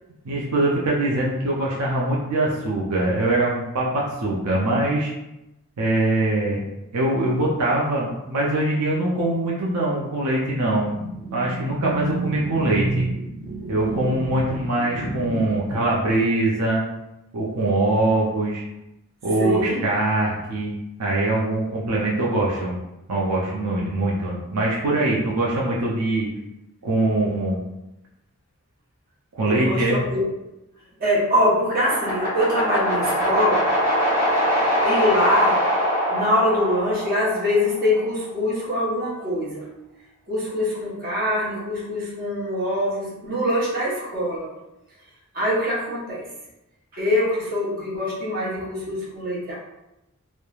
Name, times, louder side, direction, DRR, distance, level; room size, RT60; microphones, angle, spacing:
voice 1, 0.2-5.1 5.8-6.6 6.9-10.9 11.3-13.0 13.7-16.8 17.3-18.6 19.2-22.7 23.1-26.3 26.8-27.6 29.3-30.0, right 2 dB, 85° right, -4 dB, 0.5 m, -23 dB
voice 2, 10.9-15.9 19.4-19.8 25.1-25.3 29.5-30.3 31.0-33.7 34.8-35.6 36.1-39.7 40.3-44.5 45.3-46.3 46.9-49.6, left 1 dB, 40° right, -7 dB, 1.0 m, -24 dB
sound 1, 31.8-37.9, equal, 15° right, 1.2 m, -23 dB
3.0 x 2.1 x 2.3 m, 0.92 s
head